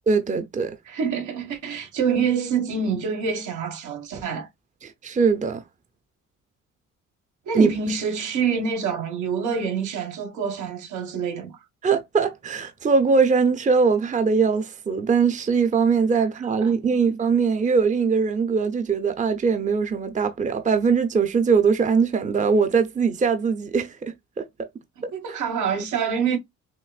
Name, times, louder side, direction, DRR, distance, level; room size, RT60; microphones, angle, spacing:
voice 1, 0.1-0.7 4.8-5.6 7.5-7.7 11.8-24.4 25.0-25.1, right 5 dB, 25° right, 0.7 m, -21 dB
voice 2, 0.9-4.5 7.5-11.6 16.4-17.0 25.0-26.4, right 6 dB, 80° right, 1.7 m, -26 dB
6.0 x 2.5 x 2.4 m
cardioid pair, 90°, 30 cm